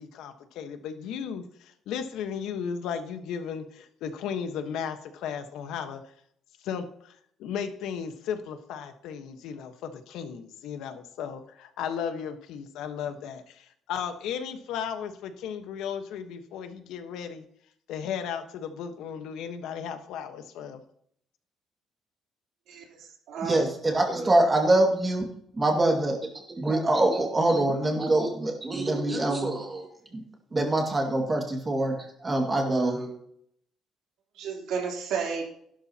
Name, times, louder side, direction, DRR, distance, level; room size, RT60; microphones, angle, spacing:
voice 1, 0.0-6.0 6.6-17.5 17.9-20.8, left 7 dB, 85° left, 7 dB, 1.3 m, -35 dB
voice 2, 22.7-23.0 23.3-23.6 34.3-35.4, right 6 dB, 75° right, 0 dB, 3.5 m, -32 dB
voice 3, 23.4-25.3 25.5-29.9 30.1-30.2 30.5-33.2, right 2 dB, 15° right, 1 dB, 2.2 m, -25 dB
15.5 x 12.0 x 3.0 m, 0.68 s
cardioid pair, 175°, 0 cm